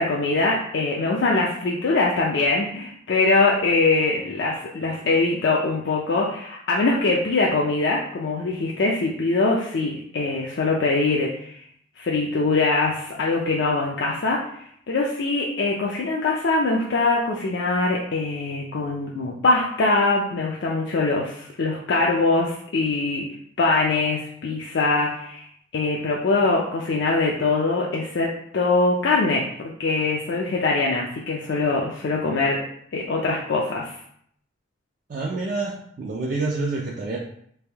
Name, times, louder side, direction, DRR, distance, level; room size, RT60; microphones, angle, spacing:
voice 1, 0.0-11.6 12.0-23.3 23.6-25.5 25.7-32.6 32.9-34.0, left 3 dB, 60° left, -2 dB, 0.4 m, -23 dB
voice 2, 35.1-37.2, right 3 dB, 45° right, -2 dB, 0.3 m, -27 dB
3.3 x 2.5 x 3.3 m, 0.68 s
head